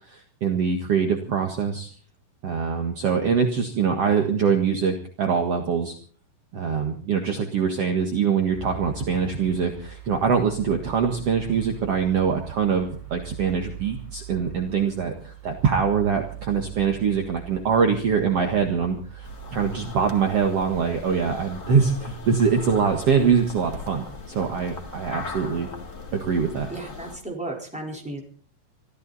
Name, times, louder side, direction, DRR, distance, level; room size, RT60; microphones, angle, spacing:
voice 1, 0.1-1.9 2.4-5.9 6.5-25.7 26.1-26.7, right 6 dB, 60° right, 4 dB, 1.6 m, -23 dB
sound 1, 8.5-26.3, right 8 dB, 35° right, 6.4 m, -43 dB
sound 2, 19.2-27.2, left 3 dB, 85° left, 0.7 m, -39 dB
voice 2, 26.7-28.2, right 2 dB, ahead, 0 dB, 3.6 m, -34 dB
25.0 x 14.0 x 4.1 m, 0.44 s
omnidirectional pair, 5.2 m